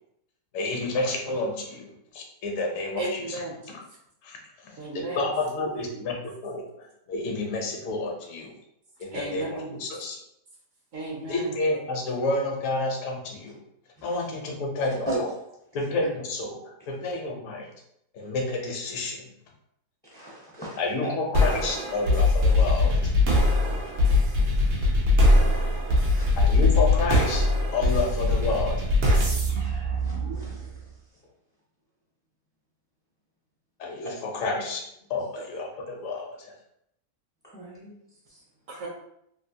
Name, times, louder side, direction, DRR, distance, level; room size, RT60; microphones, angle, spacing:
voice 1, 0.5-3.4 4.2-4.4 4.6-6.1 6.4-6.7 7.1-8.5 9.0-10.2 11.3-13.6 14.0-15.1 15.7-17.7 18.1-19.2 20.8-23.0 26.3-27.4 27.7-28.8 33.8-34.8 35.1-36.5, left 2 dB, 60° left, 0 dB, 1.0 m, -29 dB
voice 2, 3.0-3.6 4.8-5.2 5.9-6.0 9.1-9.8 10.9-11.5 38.7-38.9, right 2 dB, 65° right, -2 dB, 1.0 m, -34 dB
voice 3, 20.1-21.1 26.1-26.2 30.0-30.7 37.5-38.0, right 1 dB, 10° left, -7 dB, 0.5 m, -35 dB
sound 1, 21.3-30.8, left 2 dB, 80° right, 1.3 m, -22 dB
3.1 x 2.6 x 2.7 m, 0.76 s
omnidirectional pair, 1.7 m